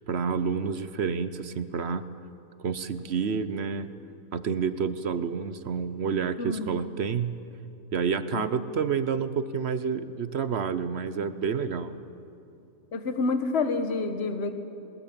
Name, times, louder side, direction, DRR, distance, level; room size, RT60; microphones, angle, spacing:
voice 1, 0.0-2.0 2.6-3.9 4.3-7.3 7.9-12.0, right 6 dB, 55° right, 13 dB, 0.9 m, -29 dB
voice 2, 6.4-6.8 8.3-8.6 11.8-11.9 12.9-14.6, left 3 dB, 50° left, 8 dB, 1.4 m, -29 dB
21.5 x 20.0 x 8.7 m, 2.6 s
omnidirectional pair, 1.5 m